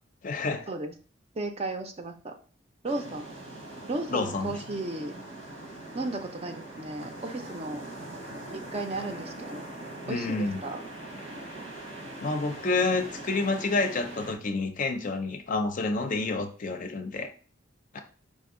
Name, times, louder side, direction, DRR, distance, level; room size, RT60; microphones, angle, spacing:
voice 1, 0.2-0.7 4.1-4.6 10.0-10.6 12.2-17.3 17.9-18.0, left 3 dB, 45° left, 6 dB, 0.5 m, -29 dB
voice 2, 1.4-2.3 2.8-3.2 3.9-5.1 5.9-7.8 8.5-9.7 10.1-10.8, right 2 dB, 30° right, 5 dB, 0.5 m, -34 dB
sound 1, 2.8-14.3, right 1 dB, 85° right, 1.4 m, -42 dB
5.2 x 2.6 x 3.7 m, 0.40 s
head